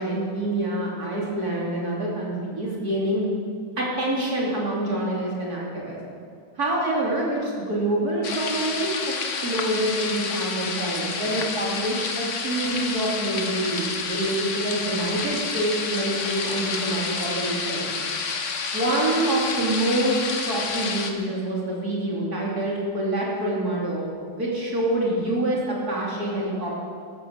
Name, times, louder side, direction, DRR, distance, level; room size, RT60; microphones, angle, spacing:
voice 1, 0.0-3.3 3.8-6.0 6.6-8.9 9.4-17.9 18.7-24.0 24.4-26.7, right 1 dB, 65° right, -4 dB, 3.6 m, -26 dB
sound 1, 8.2-21.1, left 4 dB, 50° left, 1.4 m, -29 dB
14.5 x 13.5 x 6.5 m, 2.2 s
omnidirectional pair, 1.8 m